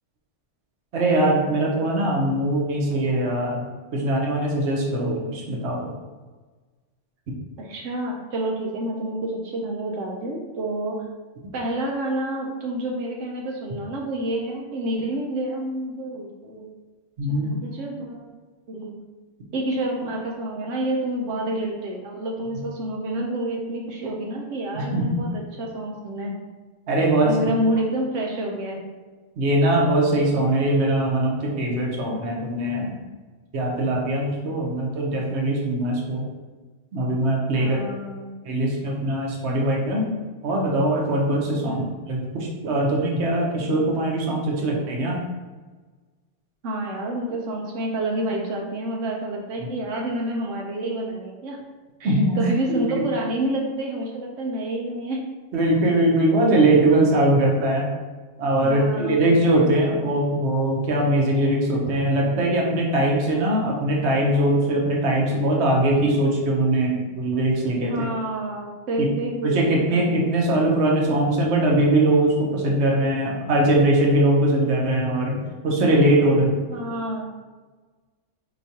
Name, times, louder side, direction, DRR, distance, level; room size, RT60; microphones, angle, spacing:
voice 1, 0.9-3.7 3.9-5.9 17.2-17.5 24.7-25.2 26.9-27.3 29.4-32.9 33.5-36.2 36.9-37.8 38.5-40.0 40.4-45.2 49.6-49.7 52.0-52.4 52.7-52.8 55.5-57.9 58.4-68.1 69.0-69.1 69.4-76.5, right 1 dB, 65° right, -1 dB, 1.1 m, -21 dB
voice 2, 7.6-11.0 11.5-16.7 17.3-18.2 18.7-19.0 19.5-26.3 27.2-28.8 37.6-38.3 41.6-41.8 46.6-51.6 52.0-55.2 58.6-59.3 67.9-70.1 76.7-77.2, right 1 dB, 90° right, -1 dB, 1.0 m, -28 dB
4.6 x 3.0 x 2.8 m, 1.3 s
omnidirectional pair, 1.2 m